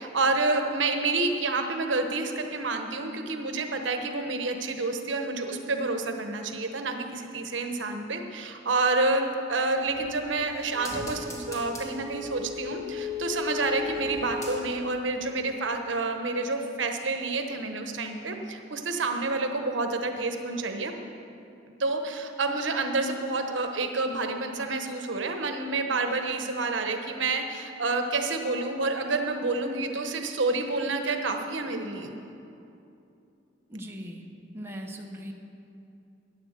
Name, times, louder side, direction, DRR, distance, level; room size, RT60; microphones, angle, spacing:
voice 1, 0.0-20.9 21.8-32.1, right 3 dB, 85° right, 5 dB, 1.1 m, -29 dB
sound 1, 9.9-15.0 15.3-15.4, left 3 dB, 20° left, 2.0 m, -36 dB
voice 2, 33.7-34.3 34.5-35.3, equal, 15° right, 0 dB, 1.0 m, -39 dB
11.5 x 9.8 x 7.4 m, 2.7 s
head